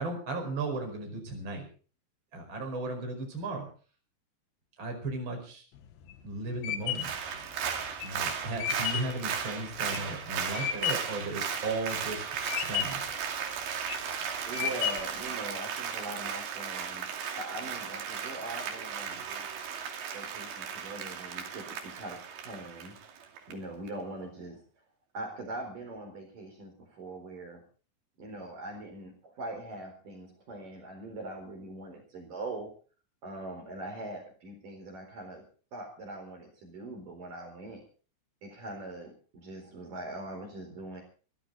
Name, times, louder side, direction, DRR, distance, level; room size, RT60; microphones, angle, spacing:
voice 1, 0.0-1.7 2.3-3.7 4.8-5.6 6.2-7.1 8.0-12.2 12.6-13.1, right 2 dB, 25° right, 3 dB, 5.5 m, -35 dB
sound 1, 5.8-11.2 11.6-12.2 12.5-13.1 13.6-14.1 14.5-15.2, left 10 dB, 70° left, 3.3 m, -33 dB
Applause, 6.9-23.5 23.9-24.0, right 7 dB, 70° right, 4.7 m, -36 dB
voice 2, 14.5-17.1 17.4-19.4 20.1-23.0 23.5-24.6 25.1-27.6 28.2-32.7 33.2-35.4 35.7-37.8 38.4-41.0, right 2 dB, 50° right, 3 dB, 5.6 m, -42 dB
23.0 x 15.0 x 4.0 m, 0.40 s
omnidirectional pair, 5.2 m